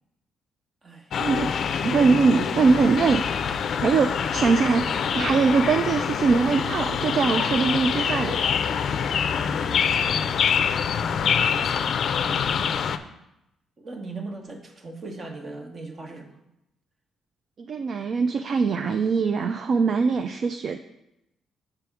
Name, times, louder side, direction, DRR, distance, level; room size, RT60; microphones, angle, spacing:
sound 1, 1.1-13.0, left 7 dB, 60° left, 0.4 m, -25 dB
voice 1, 1.8-3.2 3.8-8.4 17.6-20.8, right 5 dB, 55° right, 8 dB, 0.3 m, -22 dB
voice 2, 9.3-10.4 10.9-12.8 13.8-16.4, right 3 dB, 40° right, 4 dB, 1.0 m, -40 dB
6.8 x 3.5 x 5.8 m, 0.87 s
cardioid pair, 90°, 0 cm